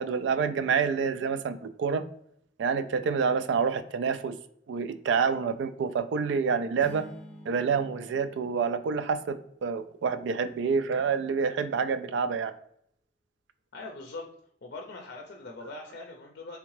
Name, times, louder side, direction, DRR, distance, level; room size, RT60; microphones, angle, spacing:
voice 1, 0.0-2.0 2.6-4.4 4.7-7.1 7.5-12.5, right 5 dB, 70° right, 12 dB, 0.3 m, -28 dB
sound 1, 6.8-9.6, equal, 5° left, 0.6 m, -48 dB
voice 2, 13.7-14.3 14.6-16.6, left 3 dB, 60° left, 2 dB, 0.5 m, -41 dB
3.5 x 3.3 x 3.1 m, 0.70 s
head